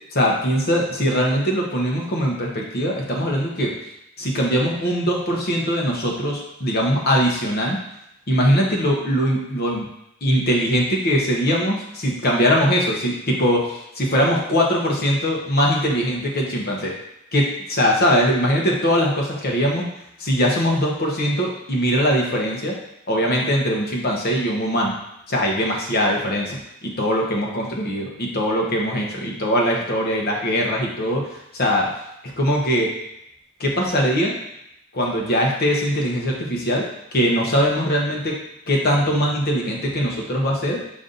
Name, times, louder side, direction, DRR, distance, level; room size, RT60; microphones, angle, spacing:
voice 1, 0.1-3.8 4.2-7.8 8.3-9.9 10.2-16.9 17.3-19.9 20.2-22.8 23.1-24.9 25.3-31.9 32.2-32.9 33.6-34.4 34.9-40.8, equal, 50° left, -1 dB, 0.9 m, -21 dB
5.2 x 2.6 x 3.9 m, 0.82 s
head